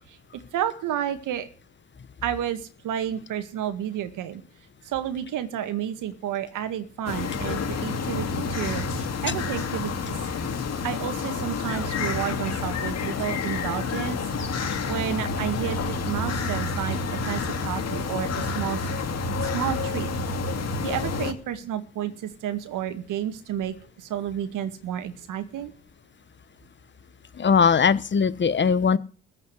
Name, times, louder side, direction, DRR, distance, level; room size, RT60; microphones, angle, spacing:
voice 1, 0.0-1.5 2.2-4.4 4.8-10.2 10.8-14.5 14.9-19.1 19.4-20.1 20.8-25.7, right 10 dB, 70° right, 10 dB, 1.9 m, -31 dB
sound 1, 7.1-21.3, left 4 dB, 50° left, 2.4 m, -29 dB
voice 2, 27.3-29.0, left 6 dB, 35° left, 17 dB, 1.0 m, -20 dB
15.0 x 5.7 x 9.7 m, 0.41 s
supercardioid pair, 60°, 33 cm